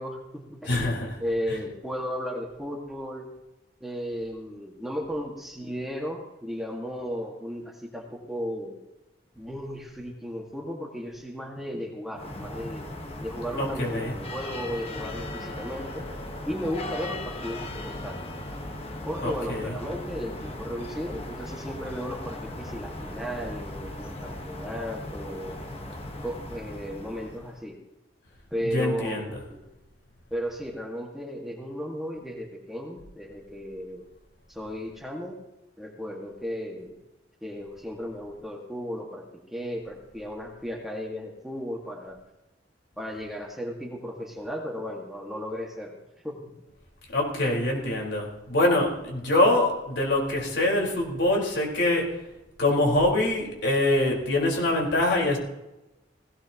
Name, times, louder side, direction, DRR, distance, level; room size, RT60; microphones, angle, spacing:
voice 1, 0.0-0.7 1.2-3.3 3.8-8.8 9.4-12.9 13.2-16.0 16.4-18.2 19.1-25.6 26.2-27.8 28.5-29.6 30.3-34.1 34.5-35.4 35.8-37.0 37.4-42.2 43.0-45.9 46.2-46.5, equal, ahead, -1 dB, 1.9 m, -35 dB
voice 2, 0.7-1.1 13.6-14.1 19.2-19.7 28.7-29.3 47.1-52.1 52.6-55.4, left 1 dB, 70° left, -1 dB, 4.6 m, -24 dB
sound 1, 12.1-27.6, left 1 dB, 30° left, 1.5 m, -38 dB
18.0 x 17.5 x 3.0 m, 1.0 s
head